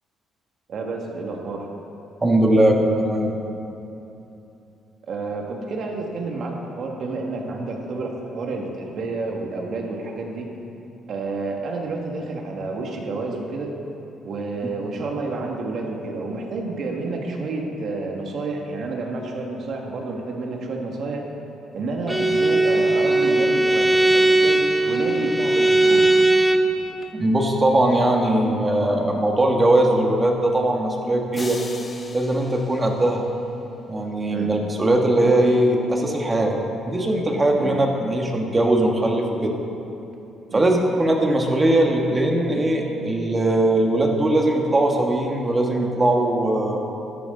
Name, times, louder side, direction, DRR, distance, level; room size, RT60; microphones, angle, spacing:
voice 1, 0.7-1.7 5.1-10.5 11.1-13.7 14.2-21.2 21.7-26.1 34.3-34.5 37.6-37.8 40.5-40.7, right 3 dB, 55° right, 1 dB, 1.9 m, -29 dB
voice 2, 2.2-3.4 27.1-31.6 32.1-33.3 33.9-36.5 36.9-39.5 40.5-46.8, right 1 dB, 20° right, 1 dB, 1.7 m, -20 dB
Bowed string instrument, 22.1-26.8, right 2 dB, 5° right, 0.8 m, -18 dB
sound 1, 31.3-33.7, left 3 dB, 25° left, 1.2 m, -40 dB
14.0 x 11.5 x 3.9 m, 3.0 s
cardioid pair, 105°, 0 cm